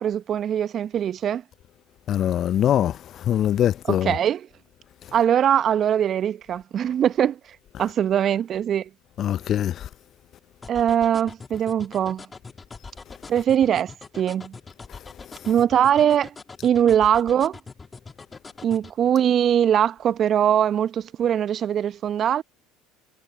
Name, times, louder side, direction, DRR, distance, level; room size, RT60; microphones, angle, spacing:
voice 1, 0.0-1.4 3.9-4.5 5.1-7.4 7.8-8.9 10.7-12.2 13.3-14.5 15.5-16.3 16.6-17.6 18.6-22.4, right 9 dB, 40° right, 0.9 m, -21 dB
voice 2, 2.1-3.0 3.3-4.1 9.2-9.9, left 10 dB, 45° left, 0.6 m, -22 dB
sound 1, 10.6-18.9, left 4 dB, 20° left, 3.0 m, -42 dB
hypercardioid pair, 70°, 0 cm